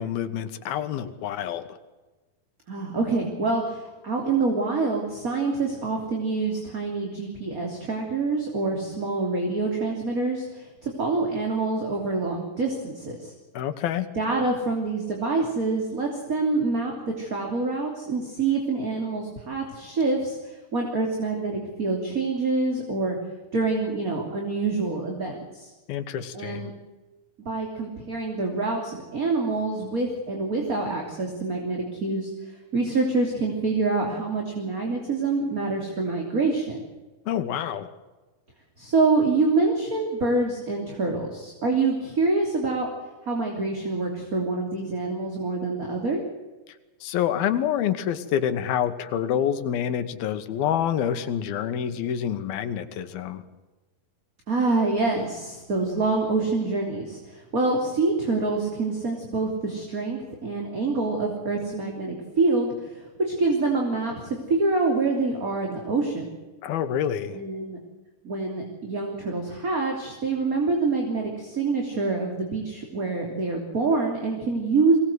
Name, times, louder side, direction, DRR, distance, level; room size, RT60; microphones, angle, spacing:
voice 1, 0.0-1.8 13.5-14.1 25.9-26.7 37.3-37.9 47.0-53.4 66.6-67.4, left 9 dB, 80° left, 11 dB, 3.1 m, -27 dB
voice 2, 2.7-13.3 14.1-23.2 23.5-25.7 26.3-26.7 27.4-32.3 32.7-36.8 38.8-42.9 43.2-46.2 54.5-66.3 67.3-67.8 68.2-75.0, right 3 dB, 25° right, 1 dB, 3.1 m, -26 dB
23.5 x 19.0 x 7.9 m, 1.2 s
omnidirectional pair, 4.3 m